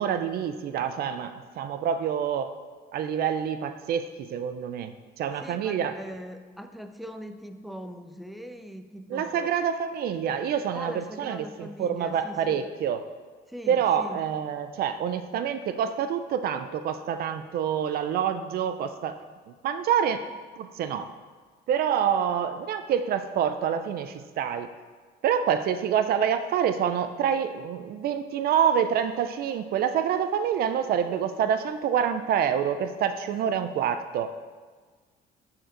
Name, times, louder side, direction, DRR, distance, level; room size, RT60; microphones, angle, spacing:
voice 1, 0.0-2.6 2.9-6.0 9.1-13.1 13.7-19.2 19.5-20.3 20.6-21.1 21.7-24.7 25.2-34.3, right 8 dB, 65° right, 10 dB, 0.5 m, -27 dB
voice 2, 5.4-9.5 10.7-12.7 13.5-14.3 20.2-20.3, equal, ahead, 7 dB, 0.5 m, -41 dB
11.0 x 4.5 x 3.9 m, 1.4 s
cardioid pair, 110°, 17 cm